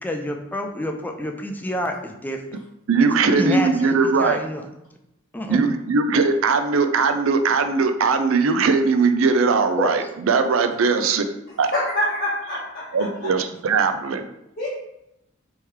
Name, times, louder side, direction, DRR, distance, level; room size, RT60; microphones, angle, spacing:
voice 1, 0.0-2.4 3.2-4.6 5.3-5.6 9.8-10.1, left 1 dB, 10° left, 3 dB, 0.4 m, -28 dB
voice 2, 2.9-4.4 5.5-11.2 11.6-11.7 12.9-14.2, right 4 dB, 75° right, 8 dB, 0.4 m, -20 dB
voice 3, 11.5-13.3 14.6-14.7, left 1 dB, 45° left, -6 dB, 0.8 m, -26 dB
3.5 x 3.1 x 4.6 m, 0.84 s
head